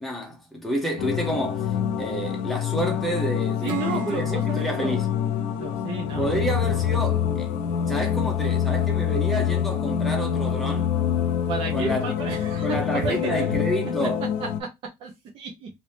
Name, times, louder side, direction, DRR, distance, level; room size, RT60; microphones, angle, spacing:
voice 1, 0.0-5.1 6.1-7.5 7.8-10.9 11.7-12.0 12.6-14.2, equal, ahead, 1.0 m, -29 dB
sound 1, 1.0-14.6, left 9 dB, 80° left, 0.5 m, -26 dB
voice 2, 3.6-5.0 5.5-6.4 11.5-13.5 14.6-14.7 15.0-15.7, right 5 dB, 45° right, 0.9 m, -32 dB
Acoustic guitar / Strum, 3.7-7.1, right 5 dB, 90° right, 0.9 m, -40 dB
2.9 x 2.8 x 3.4 m
cardioid pair, 160°, 12 cm